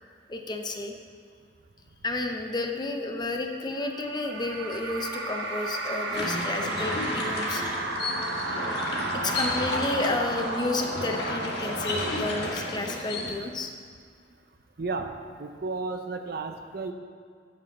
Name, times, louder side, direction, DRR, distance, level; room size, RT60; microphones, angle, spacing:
voice 1, 0.3-0.9 2.0-7.8 9.2-13.7, left 2 dB, 25° left, 3 dB, 0.7 m, -31 dB
sound 1, 3.8-13.5, right 2 dB, 80° right, 1.0 m, -33 dB
sound 2, 6.1-13.4, left 2 dB, 65° left, 1.5 m, -32 dB
voice 2, 14.8-15.1 15.4-16.9, right 3 dB, 60° right, 6 dB, 0.6 m, -33 dB
9.0 x 5.2 x 7.2 m, 2.1 s
head